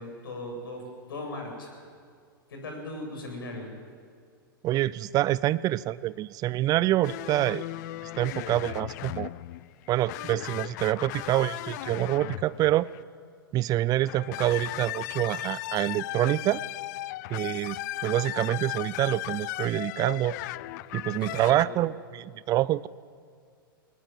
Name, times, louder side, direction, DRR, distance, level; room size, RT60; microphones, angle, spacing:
voice 1, 0.0-1.9 2.5-3.7 21.1-21.8, left 2 dB, 75° left, 2 dB, 7.8 m, -38 dB
voice 2, 4.6-7.7 8.2-9.3 9.9-12.9 13.5-16.6 17.3-17.8 18.0-20.4 20.9-22.9, right 15 dB, 30° right, 20 dB, 0.5 m, -26 dB
sound 1, 7.0-13.0 14.0-21.7, left 17 dB, 50° left, 0.5 m, -36 dB
21.0 x 19.5 x 9.3 m, 2.2 s
hypercardioid pair, 105°, 12 cm